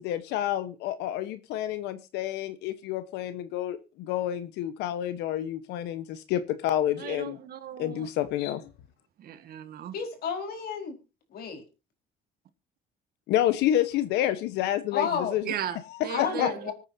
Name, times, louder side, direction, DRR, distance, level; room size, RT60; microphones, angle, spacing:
voice 1, 0.0-7.4 7.8-8.7 13.3-16.5, left 12 dB, 90° left, 1.2 m, -29 dB
voice 2, 7.0-8.1 9.2-9.9 15.5-15.8 16.0-16.7, right 10 dB, 65° right, 1.9 m, -36 dB
voice 3, 9.9-11.0 11.3-11.6 14.9-15.4 16.1-16.7, left 6 dB, 65° left, 4.7 m, -31 dB
25.0 x 9.1 x 2.8 m
cardioid pair, 110°, 17 cm